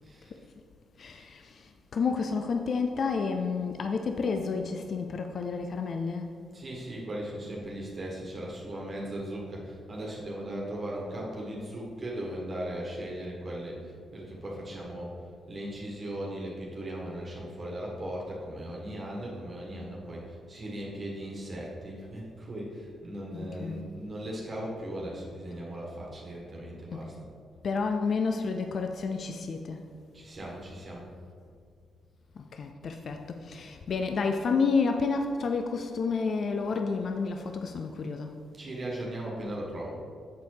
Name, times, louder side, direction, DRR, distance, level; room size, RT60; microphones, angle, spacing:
voice 1, 0.0-0.4 1.1-1.3 6.5-15.2 15.5-27.1 30.1-31.0 38.6-40.0, right 1 dB, 40° right, -3 dB, 1.6 m, -38 dB
voice 2, 1.0-6.4 23.3-23.9 26.9-27.1 27.6-29.9 32.3-38.4, left 4 dB, 55° left, 5 dB, 0.5 m, -30 dB
8.2 x 4.1 x 4.8 m, 2.1 s
cardioid pair, 70°, 0 cm